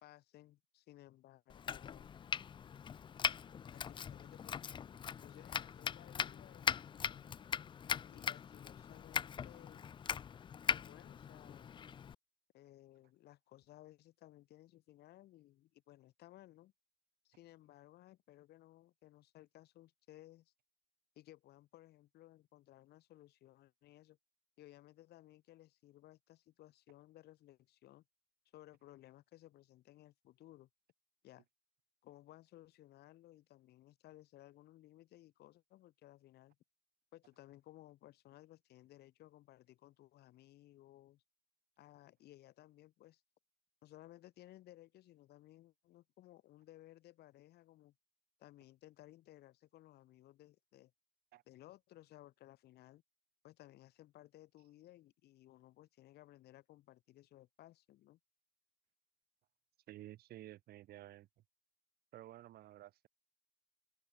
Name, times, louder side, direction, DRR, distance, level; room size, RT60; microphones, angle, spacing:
voice 1, 0.0-2.1 3.7-4.6 5.2-7.3 8.0-9.9 10.7-11.8 12.5-16.7 17.2-20.5 21.2-24.2 24.6-28.0 28.5-30.7 31.2-31.4 32.0-36.6 37.1-41.2 41.8-43.2 43.8-47.9 48.4-50.9 51.5-53.0 53.4-58.2, left 15 dB, 75° left, 2.8 m, -60 dB
Domestic sounds home sounds, 1.5-12.1, left 8 dB, 30° left, 0.4 m, -40 dB
voice 2, 59.9-61.3 62.1-63.1, right 14 dB, 70° right, 1.3 m, -53 dB
open air
cardioid pair, 110°, 17 cm